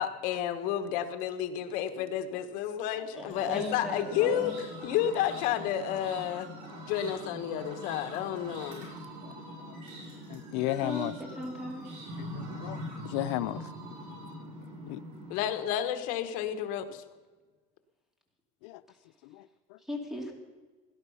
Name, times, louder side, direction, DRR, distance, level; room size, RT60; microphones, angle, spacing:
voice 1, 0.0-4.5 4.8-6.5 6.8-8.9 15.3-17.0, left 10 dB, 65° left, 1.3 m, -31 dB
voice 2, 3.2-4.6 10.5-11.9 18.9-19.0 19.8-20.3, left 1 dB, 5° right, 2.6 m, -38 dB
sound 1, 3.3-15.3, equal, 60° right, 6.2 m, -43 dB
voice 3, 10.3-11.1 12.2-12.8 13.1-13.6 14.9-15.0 18.6-18.8 19.3-19.4, left 15 dB, 80° left, 0.5 m, -33 dB
18.0 x 11.0 x 5.6 m
cardioid pair, 155°, 15 cm